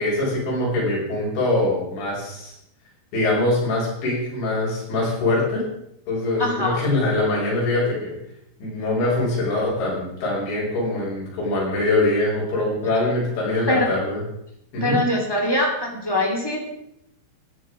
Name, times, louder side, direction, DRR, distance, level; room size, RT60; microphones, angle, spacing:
voice 1, 0.0-2.5 3.1-5.7 6.1-8.1 8.6-14.2 14.7-15.0, left 2 dB, 65° left, -5 dB, 8.1 m, -23 dB
voice 2, 6.4-6.8 13.7-13.9 14.8-16.7, left 1 dB, 15° left, 0 dB, 0.8 m, -22 dB
15.0 x 11.0 x 5.0 m, 0.80 s
omnidirectional pair, 5.6 m